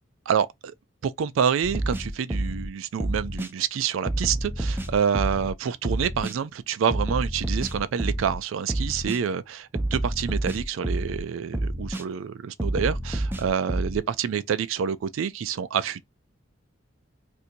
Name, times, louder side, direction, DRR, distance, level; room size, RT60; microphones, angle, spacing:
voice 1, 0.3-0.7 1.0-16.0, right 7 dB, 85° right, 0.4 m, -27 dB
sound 1, 1.6-2.7 3.0-3.5 4.1-5.5 5.8-6.4 6.9-8.4 8.7-9.2 9.8-11.2 11.5-12.0 12.6-14.0, right 1 dB, 10° right, 0.4 m, -28 dB
2.7 x 2.6 x 4.2 m
head